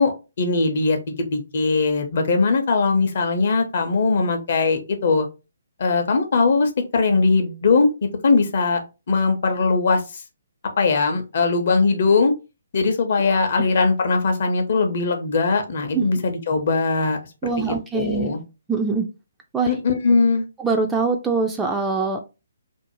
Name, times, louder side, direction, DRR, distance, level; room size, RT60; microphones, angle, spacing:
voice 1, 0.0-5.3 5.8-7.9 8.2-8.8 9.1-10.0 10.8-12.3 12.7-17.2 17.6-18.4 19.7-20.4, left 4 dB, 50° left, 5 dB, 0.6 m, -20 dB
voice 2, 17.4-18.3 18.7-19.1 19.5-19.7 20.6-22.2, right 4 dB, 10° right, 3 dB, 0.3 m, -23 dB
2.5 x 2.0 x 2.9 m, 0.28 s
figure-of-eight pair, 135°, 0 cm